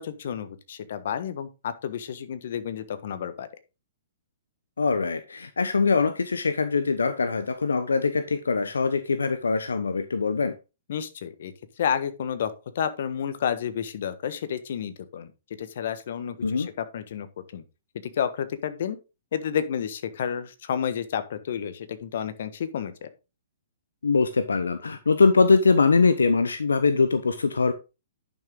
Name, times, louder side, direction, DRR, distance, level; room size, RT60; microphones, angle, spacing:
voice 1, 0.0-3.5 10.9-15.3 15.6-17.3 17.5-17.6 18.2-19.0 19.3-23.1, left 8 dB, 60° left, 1.3 m, -30 dB
voice 2, 4.8-10.5 16.4-16.7 24.0-27.7, left 4 dB, 85° left, 0.9 m, -22 dB
10.5 x 6.3 x 3.8 m
hypercardioid pair, 125°, 0 cm